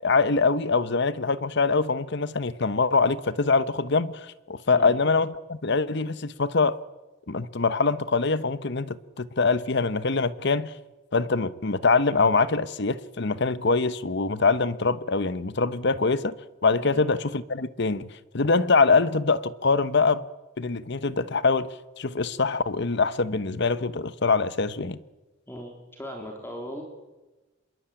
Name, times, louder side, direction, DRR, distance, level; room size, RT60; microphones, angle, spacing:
voice 1, 0.0-6.8 7.3-10.7 11.1-16.3 16.6-20.3 20.6-25.0, left 4 dB, 60° left, 1.0 m, -24 dB
voice 2, 25.5-26.8, equal, 10° left, 3.5 m, -38 dB
26.5 x 22.0 x 9.0 m
head